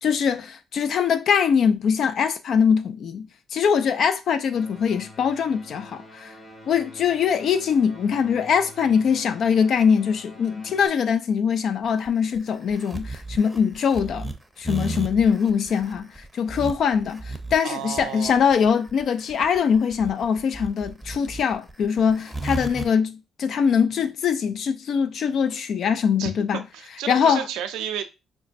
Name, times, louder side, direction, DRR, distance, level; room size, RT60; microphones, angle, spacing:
voice 1, 0.0-6.3 6.7-26.6 27.1-27.4, left 7 dB, 65° left, 0.4 m, -22 dB
sound 1, 4.4-10.9, left 1 dB, 35° left, 1.5 m, -46 dB
sound 2, 11.8-22.9, right 2 dB, 5° right, 0.7 m, -34 dB
voice 2, 17.6-18.6 26.2-26.3 26.7-28.0, right 10 dB, 85° right, 0.4 m, -32 dB
5.2 x 2.1 x 2.5 m
supercardioid pair, 65°, 0 cm